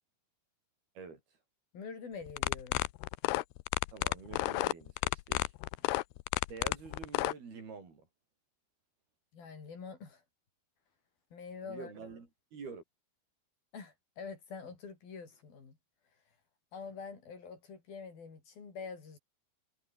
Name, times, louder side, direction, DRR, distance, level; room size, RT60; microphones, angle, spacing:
voice 1, 1.7-2.8 9.3-10.2 11.3-11.9 13.7-15.8 16.7-19.2, left 5 dB, 65° left, 7.1 m, -46 dB
sound 1, 2.3-7.3, left 20 dB, 85° left, 2.7 m, -31 dB
voice 2, 3.9-5.5 6.5-8.1 11.6-12.8, right 5 dB, 70° right, 7.3 m, -47 dB
omnidirectional pair, 4.6 m